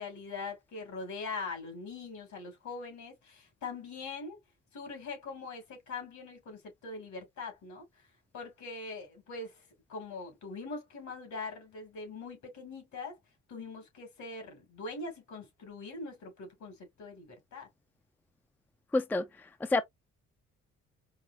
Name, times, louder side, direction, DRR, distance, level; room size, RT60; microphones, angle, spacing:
voice 1, 0.0-4.4 4.7-7.8 8.3-9.5 9.9-13.2 13.5-17.7, left 3 dB, 70° left, 2.3 m, -42 dB
voice 2, 18.9-19.8, left 2 dB, 5° left, 0.4 m, -29 dB
4.8 x 2.0 x 2.5 m
cardioid pair, 90°, 30 cm